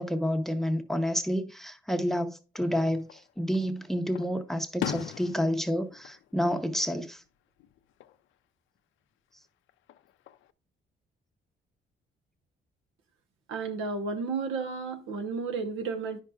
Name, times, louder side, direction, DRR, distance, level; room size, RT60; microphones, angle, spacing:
voice 1, 0.0-7.2, equal, ahead, 0.7 m, -29 dB
Fireworks, 3.0-3.7 4.2-7.3 7.6-8.2 9.7-10.5, left 11 dB, 75° left, 0.4 m, -40 dB
voice 2, 13.5-16.2, right 4 dB, 85° right, 1.0 m, -32 dB
9.4 x 5.7 x 2.3 m
cardioid pair, 90°, 20 cm